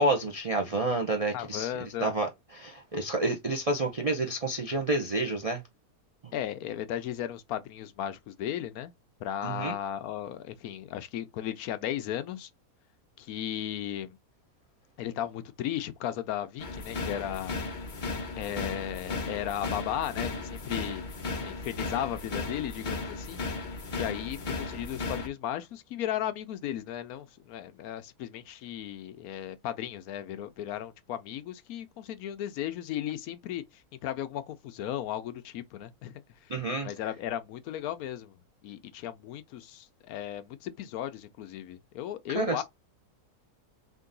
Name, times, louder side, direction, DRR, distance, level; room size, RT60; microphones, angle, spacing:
voice 1, 0.0-5.6 6.2-6.3 9.4-9.7 36.5-36.9 42.3-42.6, right 2 dB, 55° right, 0.4 m, -29 dB
voice 2, 1.3-2.1 6.3-8.9 9.2-12.5 13.2-14.2 15.0-17.5 18.4-21.0 21.4-23.4 23.9-36.5 36.8-38.3 38.6-42.6, left 11 dB, 75° left, 1.0 m, -35 dB
sound 1, 16.6-25.3, left 3 dB, 40° left, 0.8 m, -35 dB
3.7 x 2.6 x 3.8 m
omnidirectional pair, 1.6 m